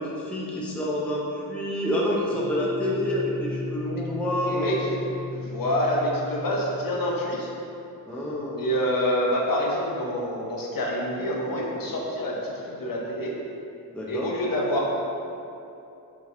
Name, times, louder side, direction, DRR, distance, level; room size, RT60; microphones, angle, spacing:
voice 1, 0.0-4.8 8.1-8.6 13.9-14.3, left 1 dB, 5° left, -4 dB, 0.4 m, -28 dB
sound 1, 2.3-7.5, left 2 dB, 70° right, 1.1 m, -34 dB
voice 2, 4.5-5.0 5.3-7.5 8.6-13.3 14.1-14.9, equal, 65° left, -3 dB, 0.7 m, -27 dB
5.0 x 3.4 x 2.5 m, 2.7 s
wide cardioid pair, 175°, 37 cm